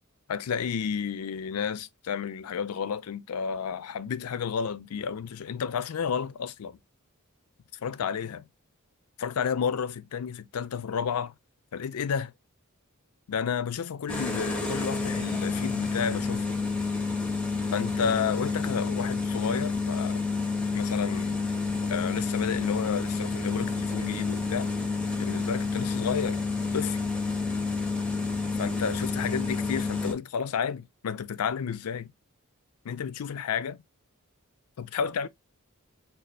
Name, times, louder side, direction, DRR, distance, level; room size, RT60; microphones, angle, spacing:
voice 1, 0.3-6.8 7.8-8.5 9.2-11.3 11.7-12.3 13.3-16.5 17.7-20.2 20.7-21.4 21.8-24.7 25.2-26.4 26.7-27.0 28.6-32.1 32.8-33.8 34.8-35.3, left 7 dB, 90° left, 0.4 m, -31 dB
sound 1, 14.1-30.1, left 4 dB, 5° left, 0.6 m, -29 dB
5.3 x 2.4 x 2.4 m
head